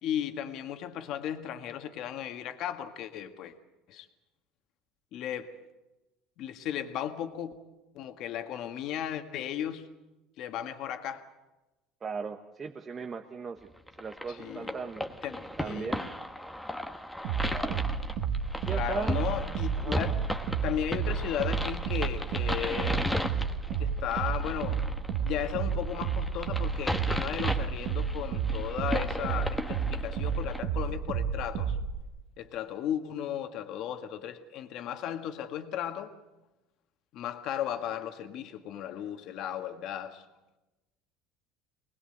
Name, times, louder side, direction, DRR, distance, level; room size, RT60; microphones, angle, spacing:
voice 1, 0.0-3.5 3.9-4.1 5.1-5.5 6.4-7.5 7.9-9.9 10.4-11.2 14.3-14.8 15.2-16.0 17.4-17.6 18.7-20.2 20.6-23.0 23.8-24.8 25.2-31.8 32.4-36.1 37.1-40.2, left 10 dB, 55° left, 1.8 m, -35 dB
voice 2, 12.0-13.7 14.0-15.0 15.6-16.1 17.5-17.9 18.6-19.2 19.8-20.0, right 5 dB, 25° right, 1.2 m, -37 dB
sound 1, 13.9-30.6, left 1 dB, 5° left, 1.3 m, -36 dB
sound 2, 17.2-32.0, right 6 dB, 65° right, 1.7 m, -31 dB
23.5 x 19.5 x 7.9 m
cardioid pair, 130°, 0 cm